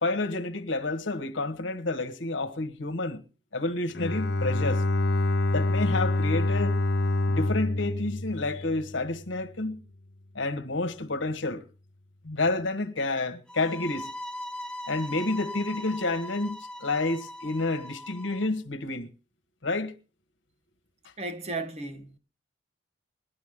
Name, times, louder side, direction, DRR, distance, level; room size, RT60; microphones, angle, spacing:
voice 1, 0.0-3.2 3.5-4.8 5.5-6.8 7.3-9.8 10.3-11.6 12.2-14.1 14.9-19.1 19.6-19.9, left 2 dB, 75° left, 1.3 m, -29 dB
Bowed string instrument, 3.9-9.2, left 2 dB, 55° left, 0.7 m, -26 dB
sound 1, 13.5-18.5, left 1 dB, 5° left, 0.5 m, -40 dB
voice 2, 21.2-22.2, right 2 dB, 35° right, 1.3 m, -35 dB
18.5 x 11.5 x 3.7 m
head